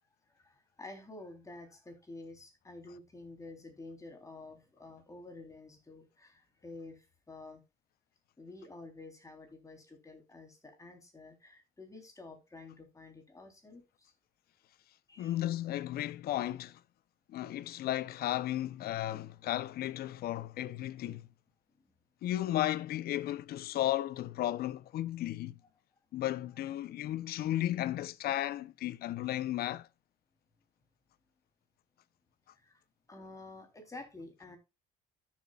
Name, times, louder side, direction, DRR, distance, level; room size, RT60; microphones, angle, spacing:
voice 1, 0.3-7.6 8.4-14.1 15.1-15.4 21.8-21.9 32.6-32.8 33.1-34.6, left 2 dB, 20° left, 3.5 m, -50 dB
voice 2, 15.2-16.8 17.3-21.2 22.2-25.6 26.1-29.9, left 13 dB, 65° left, 0.7 m, -34 dB
13.5 x 7.5 x 2.4 m
cardioid pair, 110°, 17 cm